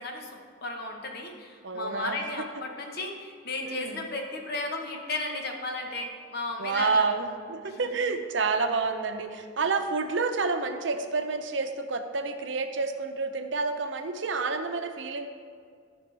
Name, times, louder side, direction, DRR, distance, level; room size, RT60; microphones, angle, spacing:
voice 1, 0.0-7.0 7.6-7.8, left 2 dB, 55° left, 2 dB, 1.1 m, -34 dB
voice 2, 1.6-2.2 2.5-2.6 3.6-4.0 6.6-15.3, right 4 dB, 70° right, 6 dB, 0.7 m, -29 dB
13.5 x 6.1 x 3.4 m, 2.1 s
head